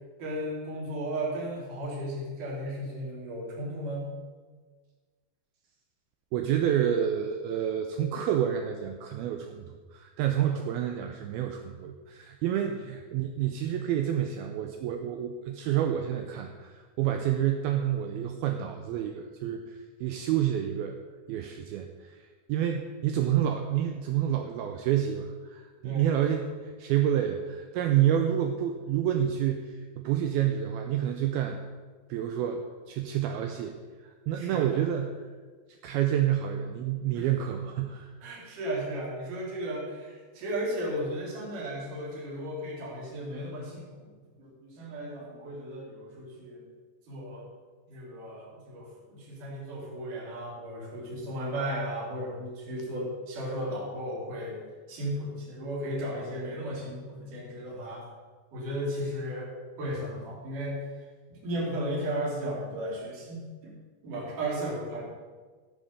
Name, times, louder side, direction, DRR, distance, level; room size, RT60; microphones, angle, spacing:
voice 1, 0.2-4.1 10.4-10.6 12.6-12.8 25.8-26.1 34.3-34.7 37.2-37.3 38.2-44.1 44.4-46.6 47.1-47.5 47.9-54.6 54.9-58.0 58.5-59.5 59.8-60.8 61.3-63.7 64.0-65.0, right 1 dB, 50° right, -5 dB, 4.3 m, -35 dB
voice 2, 6.3-21.0 21.3-22.2 22.5-31.6 32.1-32.6 32.9-35.2 35.8-38.1, right 10 dB, 90° right, 5 dB, 2.1 m, -29 dB
14.5 x 6.3 x 6.5 m, 1.4 s
omnidirectional pair, 5.1 m